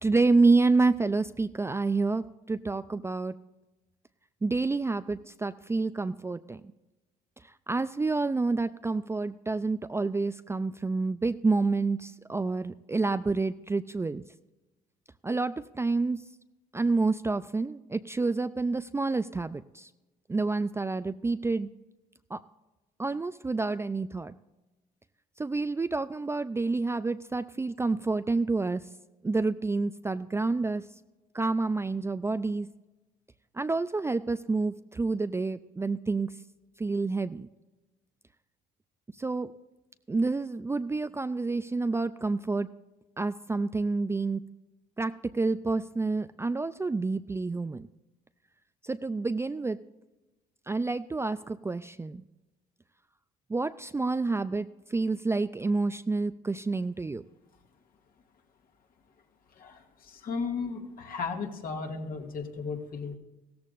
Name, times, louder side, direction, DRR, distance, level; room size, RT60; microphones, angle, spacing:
voice 1, 0.0-3.3 4.4-6.6 7.7-14.2 15.2-16.2 16.7-19.9 20.3-21.7 22.3-22.4 23.0-24.3 25.4-28.8 29.2-30.8 31.3-32.7 33.5-36.3 36.8-37.5 39.2-39.5 40.1-42.7 43.2-44.4 45.0-47.9 48.8-49.8 50.7-52.2 53.5-57.2, right 3 dB, 15° right, 11 dB, 0.4 m, -28 dB
voice 2, 59.6-63.2, left 5 dB, 55° left, 2 dB, 2.1 m, -35 dB
16.0 x 14.0 x 2.6 m, 1.1 s
supercardioid pair, 85°, 18 cm